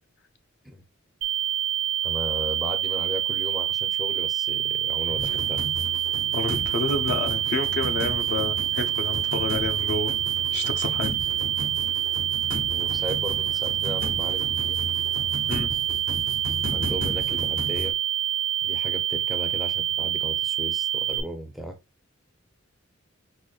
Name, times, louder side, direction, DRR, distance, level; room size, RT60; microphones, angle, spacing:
sound 1, 1.2-21.2, right 11 dB, 70° right, 0.5 m, -26 dB
voice 1, 2.0-5.6 12.7-14.8 16.7-17.9 18.6-21.8, equal, ahead, 0.4 m, -36 dB
sound 2, 5.1-17.9, left 1 dB, 80° left, 1.3 m, -35 dB
voice 2, 6.3-10.1 10.5-11.1 15.5-15.7, left 2 dB, 60° left, 0.4 m, -30 dB
4.8 x 2.1 x 2.3 m
head